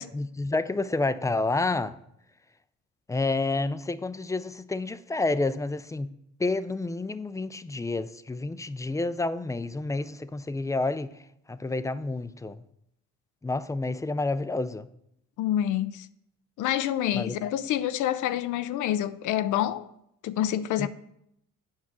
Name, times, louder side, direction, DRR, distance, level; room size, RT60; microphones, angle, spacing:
voice 1, 0.0-2.0 3.1-6.1 6.4-11.2 11.5-12.6 13.4-14.9 17.1-17.4 20.8-20.9, left 3 dB, 10° left, 0.4 m, -29 dB
voice 2, 15.4-16.1 16.6-19.9 20.2-20.9, left 11 dB, 80° left, 0.5 m, -27 dB
7.3 x 5.6 x 6.1 m
cardioid pair, 90°, 30 cm